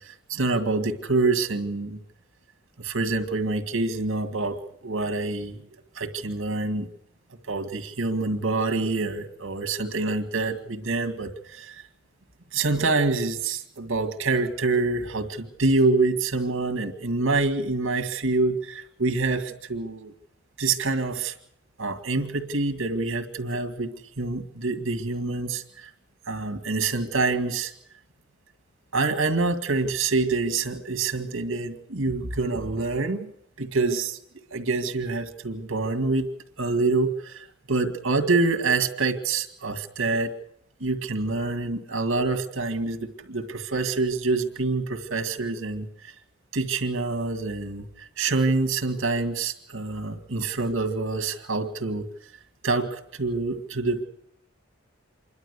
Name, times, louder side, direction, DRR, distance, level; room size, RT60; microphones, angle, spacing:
voice 1, 0.0-2.0 2.8-4.6 4.8-5.6 5.9-6.9 7.5-11.8 12.5-20.1 20.6-21.3 21.8-23.9 24.2-25.9 26.2-27.7 28.9-33.3 33.6-34.2 34.5-36.3 36.6-40.3 40.8-46.1 46.5-52.1 52.6-54.1, right 3 dB, 80° right, 8 dB, 2.1 m, -26 dB
26.5 x 12.0 x 8.2 m, 0.76 s
head